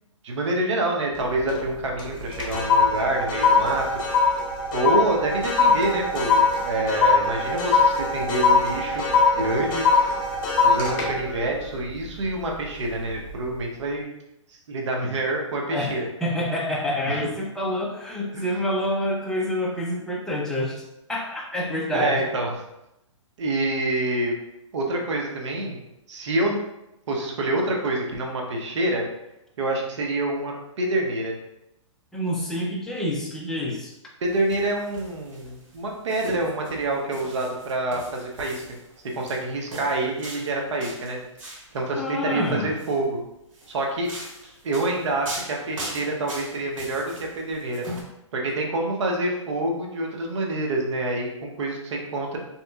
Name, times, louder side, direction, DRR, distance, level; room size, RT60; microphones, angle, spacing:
voice 1, 0.2-3.9 4.7-9.9 10.6-14.0 14.5-16.0 17.1-17.3 18.3-18.5 21.9-22.5 23.4-24.3 24.7-25.8 26.1-26.6 27.1-29.1 29.6-31.4 34.2-38.6 39.2-41.2 41.7-43.2 43.7-44.1 44.6-47.9 48.3-52.4, right 2 dB, 65° right, 0 dB, 0.8 m, -27 dB
sound 1, 1.1-1.7 2.0-12.5 13.0-13.3, left 4 dB, 40° left, 0.9 m, -22 dB
voice 2, 16.2-20.8 21.1-22.2 32.1-33.9 41.9-42.7, left 1 dB, 5° left, -3 dB, 0.4 m, -27 dB
sound 2, 34.2-41.7 42.6-43.0 43.5-48.0, right 1 dB, 85° right, 1.1 m, -40 dB
3.6 x 2.8 x 2.3 m, 0.88 s
hypercardioid pair, 135°, 16 cm